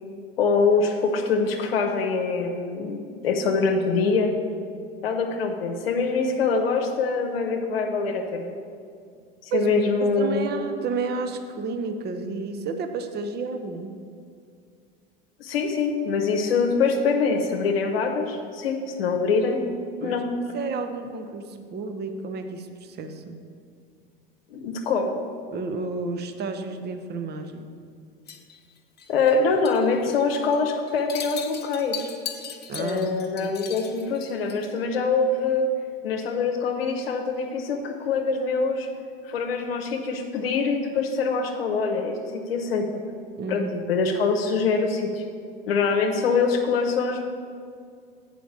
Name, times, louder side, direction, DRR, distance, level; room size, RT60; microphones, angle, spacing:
voice 1, 0.4-4.3 5.0-8.6 9.4-10.6 15.4-19.7 20.0-20.3 24.5-25.2 29.1-32.1 32.8-35.7 36.0-38.9 39.2-43.0 43.5-45.2 45.7-47.2, left 4 dB, 85° left, 1 dB, 0.8 m, -24 dB
voice 2, 10.2-13.9 20.0-20.2 20.5-23.4 25.5-27.7 32.7-33.1 33.4-33.5 43.4-43.7, right 4 dB, 35° right, 7 dB, 0.8 m, -31 dB
sound 1, 28.3-29.4 29.6-29.9 30.2-30.6 30.9-34.8, left 8 dB, 35° left, 1.0 m, -38 dB
7.9 x 5.0 x 6.6 m, 2.2 s
hypercardioid pair, 90°, 29 cm